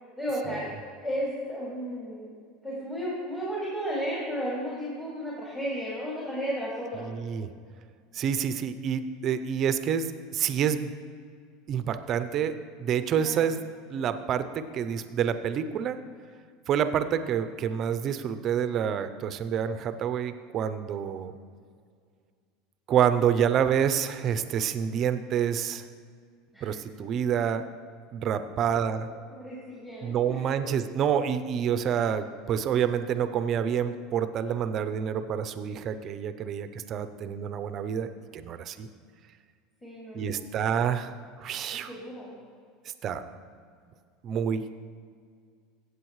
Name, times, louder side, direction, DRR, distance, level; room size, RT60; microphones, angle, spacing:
voice 1, 0.2-0.7 1.0-2.3 2.6-7.1 13.2-13.5 26.5-26.7 28.6-30.5 39.8-40.7 41.7-42.3, equal, 15° left, -7 dB, 2.5 m, -34 dB
voice 2, 7.1-7.5 8.1-10.9 11.7-12.5 12.8-13.6 13.9-16.0 16.7-21.3 22.9-25.8 26.6-27.6 28.1-29.1 30.0-38.9 40.1-41.1 41.4-41.9 43.0-43.2 44.2-44.7, right 8 dB, 40° right, 11 dB, 0.6 m, -28 dB
15.0 x 8.0 x 3.2 m, 2.1 s
supercardioid pair, 125°, 0 cm